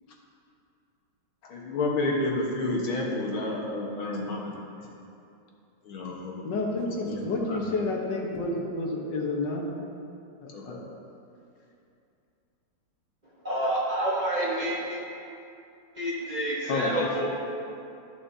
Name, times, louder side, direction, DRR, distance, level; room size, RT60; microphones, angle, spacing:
voice 1, 1.5-4.5 5.9-6.4 7.1-7.6 10.5-10.8, left 2 dB, 90° left, -3 dB, 2.2 m, -30 dB
voice 2, 6.4-9.7 10.4-10.8 16.7-17.3, left 2 dB, 65° left, -1 dB, 1.7 m, -30 dB
voice 3, 13.4-15.0 15.9-17.2, right 1 dB, 25° right, -7 dB, 1.2 m, -28 dB
13.5 x 6.9 x 2.7 m, 2.6 s
omnidirectional pair, 2.2 m